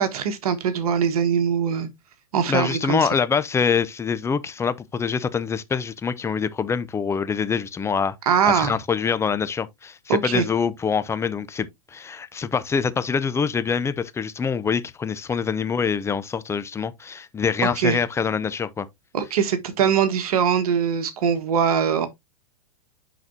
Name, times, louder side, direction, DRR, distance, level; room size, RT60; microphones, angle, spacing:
voice 1, 0.0-1.9 2.3-3.0 8.2-8.7 10.1-10.4 17.8-18.0 19.1-22.1, right 7 dB, 70° right, 1.5 m, -22 dB
voice 2, 2.5-8.2 8.4-18.9, left 6 dB, 15° left, 0.6 m, -25 dB
10.5 x 4.1 x 2.7 m
hypercardioid pair, 110°, 20 cm